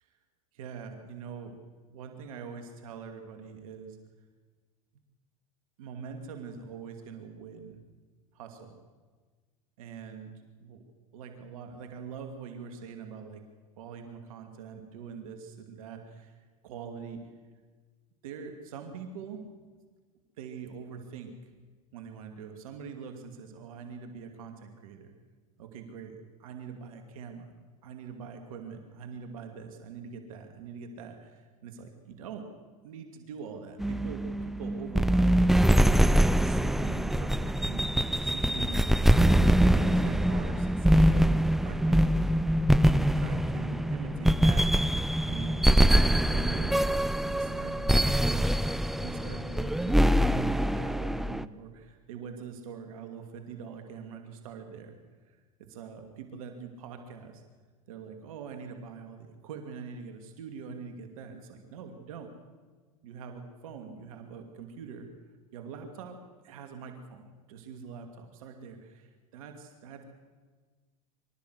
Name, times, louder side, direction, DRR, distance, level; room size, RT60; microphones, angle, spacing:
voice 1, 0.5-1.6 1.9-4.0 5.8-7.8 8.3-8.8 9.8-10.3 10.6-10.8 11.1-13.4 13.8-17.3 18.2-19.4 20.4-21.4 21.9-25.1 25.6-27.5 27.8-32.5 32.8-39.1 39.4-42.2 42.8-44.9 45.2-45.8 46.2-47.0 47.3-48.6 49.0-54.9 55.2-57.4 57.9-62.3 63.0-65.1 65.5-66.2 66.4-70.0, right 6 dB, 75° right, 5 dB, 2.6 m, -44 dB
sound 1, 33.8-51.4, right 1 dB, ahead, 0.6 m, -24 dB
24.5 x 13.5 x 8.1 m, 1.4 s
hypercardioid pair, 100°, 18 cm